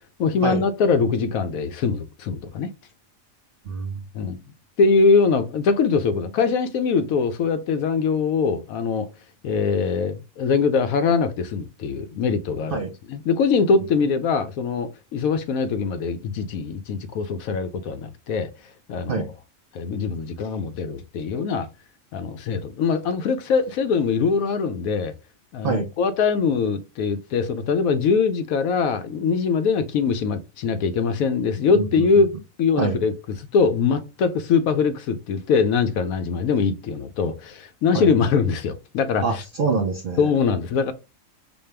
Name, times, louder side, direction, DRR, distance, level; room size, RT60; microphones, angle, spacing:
voice 1, 0.2-2.7 4.1-4.4 4.8-9.1 9.4-12.8 13.1-18.5 18.9-19.3 19.7-21.7 22.1-25.1 25.5-32.3 32.6-33.1 33.5-39.4 40.2-40.9, left 5 dB, 80° left, 1.1 m, -22 dB
voice 2, 3.7-4.0 12.7-12.9 19.1-19.3 25.6-25.9 31.7-32.1 32.8-33.0 37.9-38.1 39.2-40.3, right 4 dB, 70° right, 0.5 m, -25 dB
5.2 x 2.3 x 3.2 m
omnidirectional pair, 1.5 m